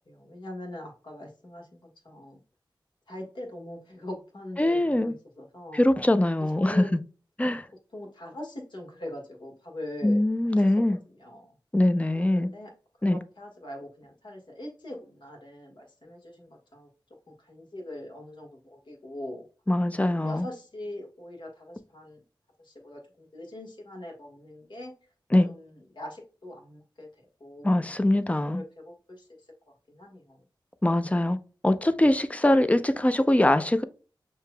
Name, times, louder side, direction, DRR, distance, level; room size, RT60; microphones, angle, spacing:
voice 1, 0.1-2.4 3.1-5.8 6.6-7.0 7.9-11.5 12.1-12.7 13.0-16.9 17.3-19.4 20.1-22.2 22.6-24.9 25.4-29.4 29.9-30.4, left 1 dB, 65° left, 1.6 m, -42 dB
voice 2, 4.6-5.1 5.7-7.0 7.4-7.6 10.0-11.0 11.7-12.5 13.0-13.2 19.7-20.5 25.3-25.5 27.6-28.6 30.8-31.4 31.6-33.8, left 1 dB, 15° left, 0.5 m, -22 dB
6.4 x 2.9 x 2.2 m
cardioid pair, 45°, 9 cm